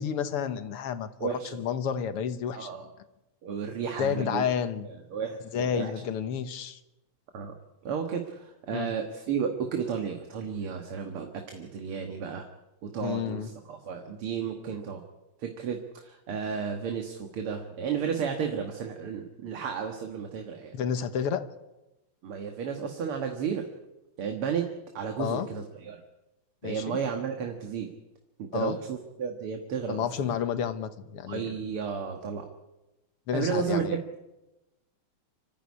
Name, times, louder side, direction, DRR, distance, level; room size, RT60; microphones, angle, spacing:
voice 1, 0.0-2.7 4.0-4.9 5.5-6.8 8.7-8.9 13.0-13.5 20.7-21.5 25.2-25.5 26.6-27.0 28.5-28.8 29.9-31.6 33.3-34.0, left 8 dB, 90° left, 11 dB, 2.2 m, -30 dB
voice 2, 1.2-1.6 2.5-2.9 3.4-4.5 5.1-5.9 7.3-7.5 7.8-12.5 12.8-15.0 15.4-20.8 22.2-23.7 24.2-24.7 24.9-26.0 26.6-27.9 28.4-30.1 31.3-32.5 33.3-33.9, right 6 dB, 80° right, 4 dB, 2.5 m, -33 dB
25.5 x 14.5 x 9.7 m, 1.0 s
omnidirectional pair, 2.4 m